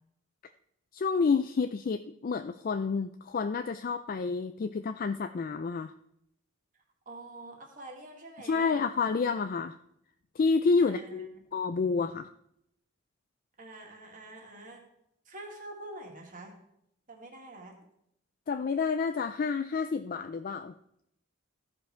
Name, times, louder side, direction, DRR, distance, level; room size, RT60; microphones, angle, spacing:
voice 1, 0.9-5.9 8.4-9.7 10.4-12.3 18.5-20.7, left 4 dB, 45° left, 8 dB, 0.3 m, -29 dB
voice 2, 6.7-8.8 10.8-11.4 13.6-14.8 15.3-16.5 17.1-17.7, right 2 dB, 40° right, 0 dB, 2.0 m, -46 dB
14.5 x 5.3 x 4.4 m, 0.75 s
head